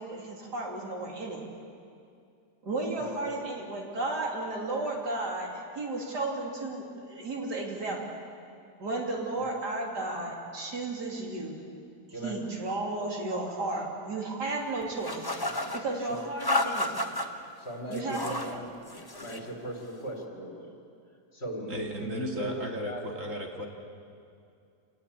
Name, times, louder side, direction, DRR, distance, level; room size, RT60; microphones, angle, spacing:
voice 1, 0.0-1.4 2.6-8.1 8.8-11.6 12.1-15.2 15.7-16.9 17.9-18.6, right 2 dB, 80° right, 0 dB, 3.7 m, -33 dB
voice 2, 3.0-3.3 12.1-12.3 16.1-16.2 17.6-18.7 19.1-20.7 21.3-22.6 22.8-23.0, equal, 40° left, 2 dB, 3.8 m, -38 dB
sound 1, 15.0-15.8 16.4-17.3 17.9-18.5 18.9-19.5, left 1 dB, 15° left, 1.1 m, -31 dB
voice 3, 21.7-23.7, equal, 50° right, 1 dB, 2.6 m, -35 dB
27.0 x 19.0 x 8.6 m, 2.4 s
omnidirectional pair, 1.8 m